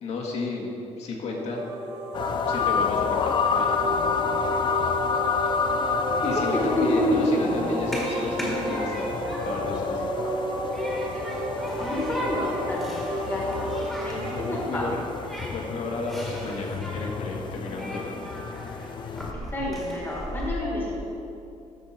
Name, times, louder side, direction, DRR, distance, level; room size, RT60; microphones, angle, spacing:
voice 1, 0.0-0.7 1.0-1.6 2.5-3.7 6.2-9.2 9.5-10.2 14.3-15.0 15.5-18.2, left 3 dB, 65° left, -1 dB, 1.6 m, -33 dB
sound 1, 1.3-16.0, right 1 dB, 90° right, 2.2 m, -33 dB
sound 2, 2.1-19.3, left 6 dB, 40° left, 0.4 m, -30 dB
Human group actions, 6.2-20.5, equal, ahead, 1.6 m, -38 dB
voice 2, 6.5-7.7 11.7-13.5 14.0-14.8 19.5-21.0, left 1 dB, 20° left, -4 dB, 1.6 m, -28 dB
13.5 x 5.6 x 4.3 m, 2.8 s
cardioid pair, 170°, 12 cm